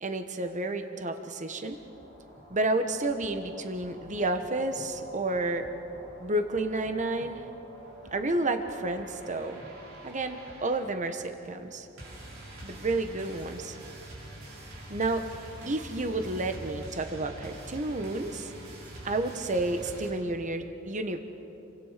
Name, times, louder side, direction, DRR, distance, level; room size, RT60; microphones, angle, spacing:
voice 1, 0.0-1.8 2.5-5.7 6.2-7.4 8.1-9.6 10.0-11.9 12.6-13.8 14.9-15.2 15.7-18.5 19.0-21.2, right 2 dB, 35° right, 7 dB, 1.2 m, -30 dB
sound 1, 1.4-20.1, right 1 dB, 70° right, 6.2 m, -46 dB
30.0 x 24.5 x 5.1 m, 2.9 s
head